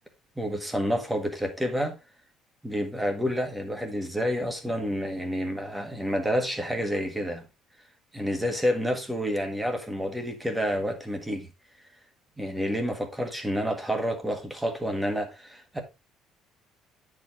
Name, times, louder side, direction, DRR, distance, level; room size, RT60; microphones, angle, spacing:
voice 1, 0.4-2.0 2.6-7.4 8.1-11.5 12.4-15.8, equal, 5° right, 1.6 m, -29 dB
9.9 x 4.8 x 3.6 m
cardioid pair, 155°, 0 cm